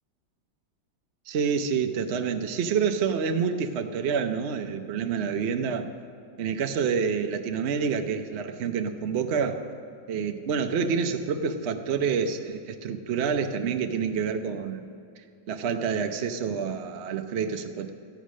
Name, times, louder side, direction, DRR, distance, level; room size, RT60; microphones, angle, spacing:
voice 1, 1.3-5.9 6.4-9.6 10.1-14.9 15.5-17.9, right 6 dB, 65° right, 6 dB, 0.6 m, -28 dB
13.5 x 9.1 x 6.3 m, 2.5 s
omnidirectional pair, 1.9 m